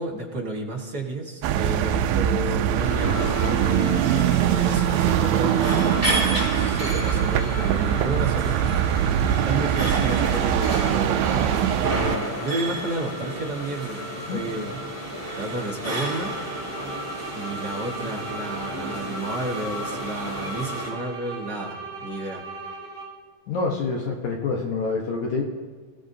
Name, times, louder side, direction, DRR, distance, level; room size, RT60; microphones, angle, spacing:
voice 1, 0.0-8.9 9.4-14.8 15.1-16.7 17.3-22.4, right 2 dB, 50° right, -1 dB, 1.2 m, -32 dB
sound 1, 1.4-12.2, right 10 dB, 85° right, 2.4 m, -22 dB
sound 2, 2.8-20.9, equal, 5° right, 5.7 m, -32 dB
sound 3, 15.8-23.3, right 4 dB, 25° left, 5.2 m, -38 dB
voice 2, 23.5-25.4, left 4 dB, 65° left, 0 dB, 2.3 m, -26 dB
29.5 x 16.0 x 2.8 m, 1.5 s
omnidirectional pair, 4.1 m